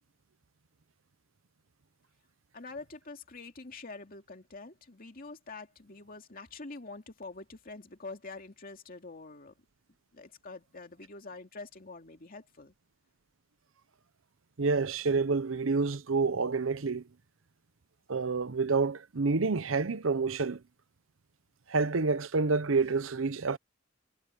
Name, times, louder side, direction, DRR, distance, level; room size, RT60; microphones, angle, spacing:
voice 1, 2.5-9.5 10.1-12.7, left 3 dB, 45° left, 2.5 m, -46 dB
voice 2, 14.6-17.0 18.1-20.6 21.7-23.6, right 4 dB, 85° right, 0.8 m, -28 dB
head